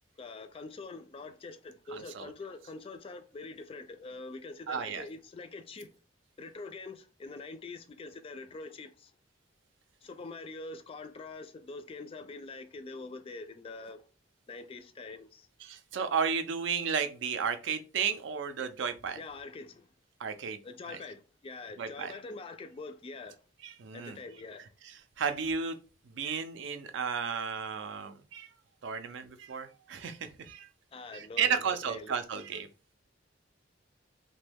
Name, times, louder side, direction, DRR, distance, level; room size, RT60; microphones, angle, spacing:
voice 1, 0.2-5.9 6.4-9.1 10.0-14.0 14.5-15.5 19.2-19.9 20.6-23.4 23.9-24.7 30.9-32.2, left 3 dB, 30° left, 0.3 m, -44 dB
voice 2, 1.9-2.3 4.7-5.0 15.6-19.2 20.2-20.6 20.9-21.0 21.8-22.1 23.6-24.2 25.2-25.8 26.1-28.5 28.8-30.7 31.1-32.7, right 6 dB, 65° right, 0.4 m, -33 dB
3.0 x 2.2 x 3.3 m
head